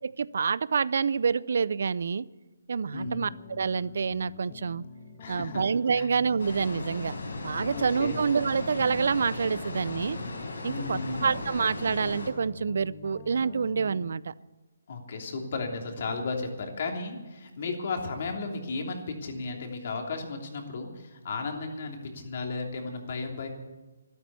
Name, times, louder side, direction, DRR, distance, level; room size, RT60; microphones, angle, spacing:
voice 1, 0.0-2.3 2.7-4.8 5.3-7.2 7.4-10.2 10.6-14.3, right 5 dB, 65° right, 20 dB, 0.5 m, -27 dB
voice 2, 2.9-3.2 5.2-5.6 5.9-6.1 7.7-8.2 10.7-11.3 14.9-23.5, left 3 dB, 50° left, 2 dB, 3.1 m, -34 dB
sound 1, 3.0-14.1, left 5 dB, 35° left, 1.2 m, -46 dB
sound 2, 6.4-12.3, left 2 dB, 80° left, 5.2 m, -37 dB
13.0 x 12.0 x 8.3 m, 1.2 s
hypercardioid pair, 155°, 0 cm